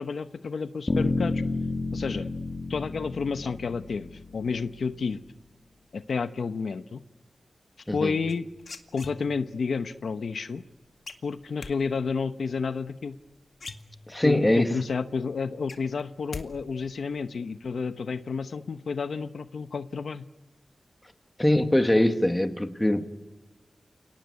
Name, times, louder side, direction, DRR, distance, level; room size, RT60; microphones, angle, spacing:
voice 1, 0.0-1.4 1.9-2.3 2.7-5.2 5.9-7.0 7.9-8.4 8.9-10.6 11.2-13.2 14.2-20.2, left 5 dB, 85° left, 1.0 m, -30 dB
sound 1, 0.9-4.9, left 2 dB, 35° left, 2.3 m, -31 dB
sound 2, 8.3-9.6 11.1-11.7 13.2-13.3 13.5-14.4 14.8-14.9 15.2-16.5 16.7-17.2, left 4 dB, 65° left, 2.1 m, -41 dB
voice 2, 14.1-14.7 21.4-23.1, left 1 dB, 10° left, 1.9 m, -22 dB
30.0 x 18.5 x 9.7 m
wide cardioid pair, 100°, 0 cm